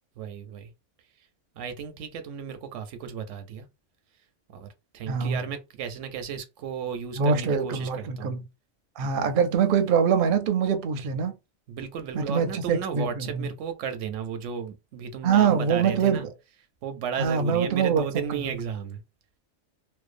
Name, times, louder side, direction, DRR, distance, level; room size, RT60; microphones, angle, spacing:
voice 1, 0.2-0.7 1.5-3.7 4.5-4.7 4.9-8.3 11.7-16.3 16.8-19.0, right 7 dB, 85° right, 0.9 m, -34 dB
voice 2, 5.1-5.4 7.2-8.4 9.0-11.3 12.1-13.5 15.2-16.2 17.2-18.0 18.3-18.4, right 6 dB, 60° right, 0.6 m, -24 dB
2.6 x 2.1 x 2.4 m
omnidirectional pair, 1.2 m